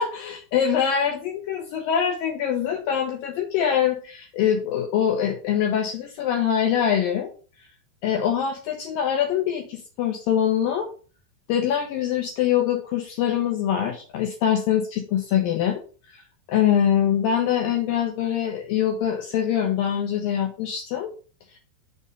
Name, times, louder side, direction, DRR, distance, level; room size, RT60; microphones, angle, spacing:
voice 1, 0.0-7.3 8.0-10.9 11.5-15.8 16.1-16.2 16.5-21.1 21.5-21.6, left 9 dB, 70° left, 2 dB, 2.3 m, -24 dB
6.4 x 4.5 x 5.3 m, 0.38 s
omnidirectional pair, 4.8 m